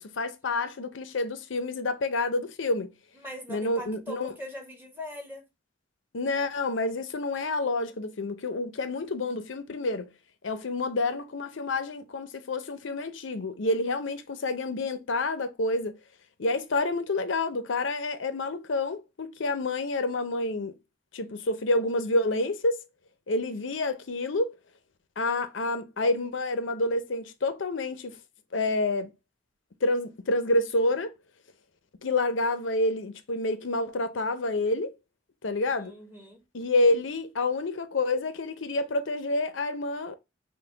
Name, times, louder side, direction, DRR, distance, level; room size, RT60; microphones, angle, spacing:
voice 1, 0.0-2.9 3.5-4.3 6.1-10.1 10.4-15.9 16.4-20.7 21.1-22.8 23.3-24.5 25.2-28.2 28.5-29.1 29.8-31.1 32.0-34.9 35.4-35.9 36.5-40.2, left 2 dB, 80° left, 0.7 m, -28 dB
voice 2, 3.1-5.4 35.8-36.4, left 1 dB, 10° right, 1.0 m, -41 dB
5.8 x 2.2 x 3.3 m
head